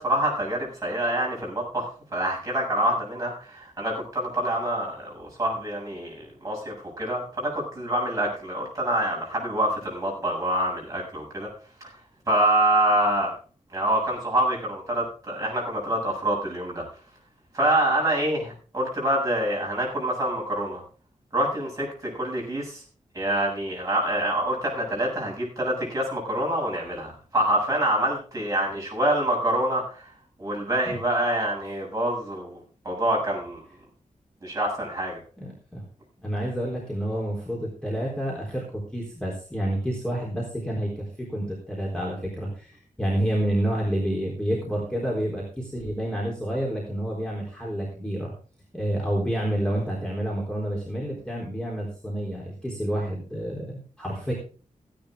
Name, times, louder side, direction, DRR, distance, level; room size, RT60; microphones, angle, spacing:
voice 1, 0.0-6.1 6.4-11.5 12.3-13.3 13.7-16.8 17.5-20.8 21.3-22.8 23.1-30.1 30.4-33.6 34.4-35.2, right 1 dB, 25° right, -2 dB, 7.7 m, -26 dB
voice 2, 35.4-35.8 36.2-42.7 43.0-48.3 48.7-54.3, right 1 dB, 5° left, -4 dB, 3.9 m, -29 dB
16.0 x 10.5 x 3.8 m, 0.38 s
wide cardioid pair, 165°, 13 cm